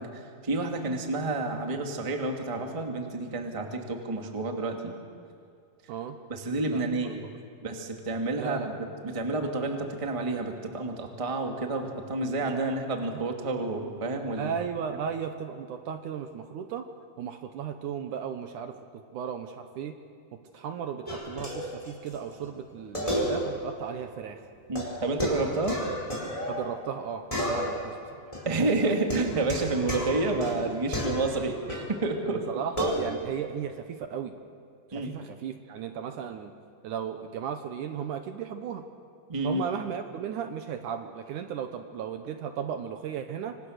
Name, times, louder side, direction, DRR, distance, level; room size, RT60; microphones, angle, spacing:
voice 1, 0.0-4.9 6.3-7.2 7.6-8.7 9.0-14.5 24.7-25.8 28.4-32.4 34.9-35.1 39.3-39.6, right 2 dB, 15° right, 3 dB, 1.2 m, -29 dB
voice 2, 8.4-8.7 13.1-13.2 14.4-16.9 17.2-20.0 20.3-24.4 26.5-28.2 32.3-34.4 34.9-36.5 36.8-38.8 39.4-43.6, right 8 dB, 70° right, 7 dB, 2.2 m, -35 dB
sound 1, 21.1-22.2 22.4-22.5 22.9-23.8 24.0-24.1 24.7-27.0 27.3-28.0 28.3-32.0 32.8-33.0, equal, 10° left, 4.7 m, -32 dB
26.5 x 25.5 x 6.5 m, 2.3 s
omnidirectional pair, 4.2 m